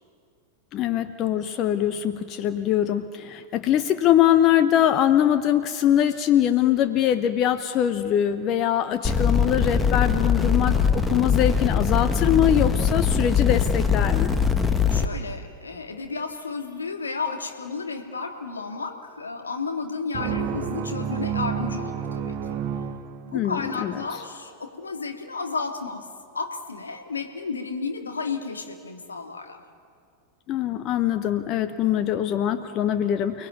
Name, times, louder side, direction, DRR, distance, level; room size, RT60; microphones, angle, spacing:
voice 1, 0.7-14.3 23.3-23.9 30.5-33.5, left 11 dB, 35° left, 10 dB, 0.9 m, -22 dB
sound 1, 9.0-15.1, left 6 dB, 10° left, 1.4 m, -22 dB
voice 2, 14.9-22.6 23.2-26.1 26.3-29.6, left 4 dB, 75° left, 3 dB, 2.6 m, -32 dB
sound 2, 20.1-23.7, right 7 dB, 40° right, 1.5 m, -30 dB
30.0 x 19.5 x 9.3 m, 2.4 s
figure-of-eight pair, 90°, 0 cm